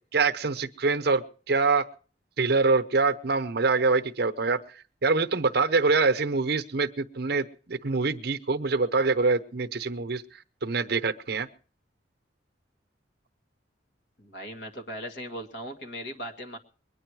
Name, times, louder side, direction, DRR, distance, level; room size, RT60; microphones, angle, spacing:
voice 1, 0.1-1.8 2.4-4.6 5.0-10.2 10.6-11.5, right 4 dB, 60° right, 11 dB, 0.8 m, -25 dB
voice 2, 14.2-16.6, equal, 70° left, 4 dB, 2.0 m, -38 dB
22.0 x 9.9 x 4.8 m, 0.41 s
head